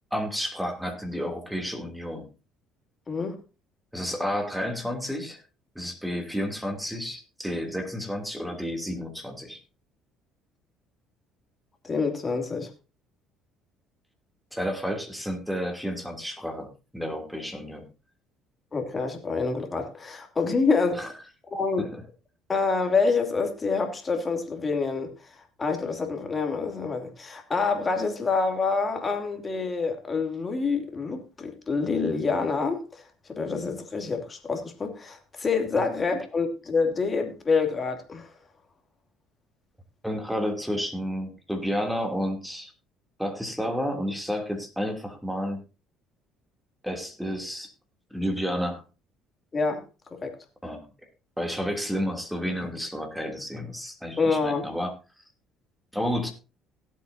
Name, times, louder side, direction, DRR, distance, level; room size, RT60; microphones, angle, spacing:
voice 1, 0.1-2.3 3.9-5.4 5.7-9.6 14.5-17.8 20.9-21.1 21.8-22.0 40.0-42.7 43.2-45.6 46.8-47.7 48.1-48.8 50.6-50.8 51.4-54.9 55.9-56.3, equal, 5° right, 4 dB, 3.0 m, -31 dB
voice 2, 11.8-12.7 18.7-21.0 21.5-21.9 22.5-25.1 25.6-33.0 33.3-38.3 49.5-49.8 50.2-50.3 54.2-54.7, left 4 dB, 30° left, 5 dB, 2.8 m, -27 dB
17.5 x 8.3 x 2.8 m, 0.31 s
hypercardioid pair, 65°, 0 cm